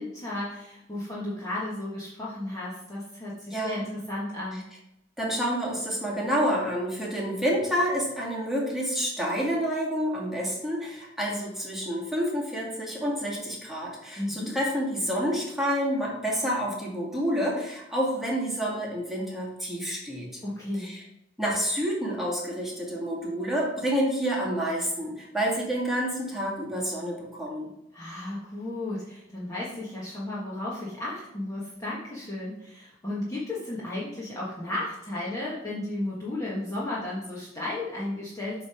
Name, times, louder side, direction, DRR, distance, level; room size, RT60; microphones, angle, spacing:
voice 1, 0.0-4.6 14.2-14.6 20.4-20.9 27.9-38.6, left 1 dB, 20° left, -7 dB, 1.3 m, -34 dB
voice 2, 5.2-20.4 20.8-21.0 21.4-27.7, equal, ahead, -5 dB, 2.0 m, -28 dB
8.3 x 3.4 x 5.6 m, 0.88 s
head